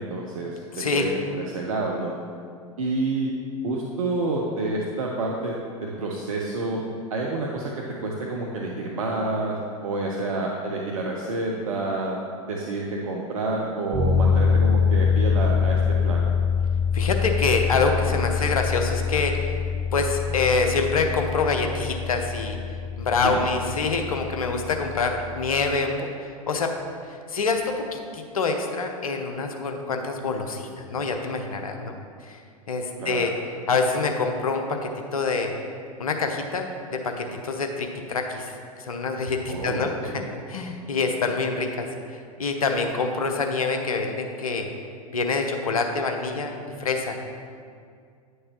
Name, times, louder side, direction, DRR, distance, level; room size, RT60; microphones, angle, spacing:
voice 1, 0.0-2.1 2.8-3.3 3.6-6.8 7.1-7.7 8.0-12.2 12.4-16.3 23.2-23.4 33.0-33.3 39.5-40.2, right 2 dB, 65° right, -1 dB, 0.8 m, -28 dB
voice 2, 0.7-1.1 16.9-19.4 19.9-22.6 23.0-26.7 27.3-32.0 32.2-32.4 32.7-33.3 33.7-35.5 36.0-40.2 40.5-44.7 45.1-46.5 46.8-47.2, left 4 dB, 70° left, 4 dB, 0.8 m, -26 dB
sound 1, 13.9-25.8, left 6 dB, 45° right, 1.9 m, -25 dB
9.8 x 6.4 x 3.0 m, 2.2 s
figure-of-eight pair, 90°, 19 cm